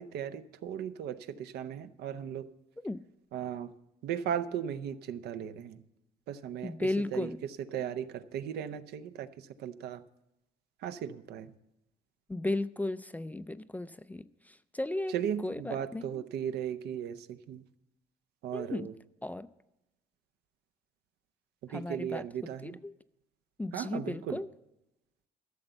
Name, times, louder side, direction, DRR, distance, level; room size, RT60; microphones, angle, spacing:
voice 1, 0.0-2.5 3.3-3.7 4.0-5.8 6.3-7.3 7.7-10.0 10.8-11.5 15.1-17.6 18.4-18.9 21.6-22.8 23.7-24.4, right 9 dB, 75° right, 11 dB, 0.7 m, -37 dB
voice 2, 6.6-7.4 12.3-14.3 14.7-15.1 15.4-16.1 18.5-18.9 19.2-19.5 21.7-22.2 22.6-22.9 23.6-24.5, left 2 dB, 10° left, 14 dB, 0.4 m, -34 dB
13.0 x 6.9 x 7.6 m, 0.91 s
cardioid pair, 110°, 17 cm